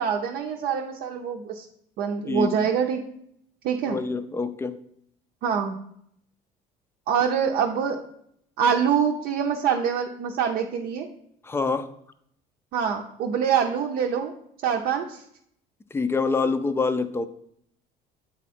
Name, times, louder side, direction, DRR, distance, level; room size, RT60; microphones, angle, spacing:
voice 1, 0.0-1.6 2.0-3.0 3.6-4.0 5.4-5.8 7.1-8.0 8.6-11.1 12.7-14.3 14.6-15.2, right 7 dB, 65° right, 0 dB, 0.7 m, -25 dB
voice 2, 2.3-2.7 3.9-4.8 11.4-11.9 15.9-17.3, left 4 dB, 15° left, 11 dB, 0.5 m, -26 dB
8.5 x 3.6 x 4.3 m, 0.69 s
cardioid pair, 125°, 17 cm